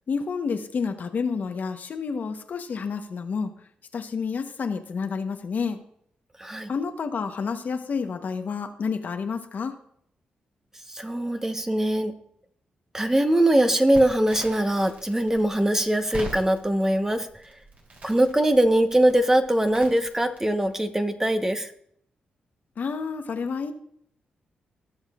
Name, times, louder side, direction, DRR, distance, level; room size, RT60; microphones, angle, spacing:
voice 1, 0.1-3.5 3.9-5.8 6.7-9.7 22.8-23.7, left 5 dB, 60° left, 6 dB, 1.0 m, -29 dB
voice 2, 10.9-12.1 12.9-17.3 18.0-21.7, right 1 dB, 15° right, 7 dB, 1.1 m, -22 dB
Crackle, 13.9-20.8, right 1 dB, 50° right, 3.2 m, -43 dB
17.0 x 6.5 x 2.5 m, 0.69 s
cardioid pair, 60°, 3 cm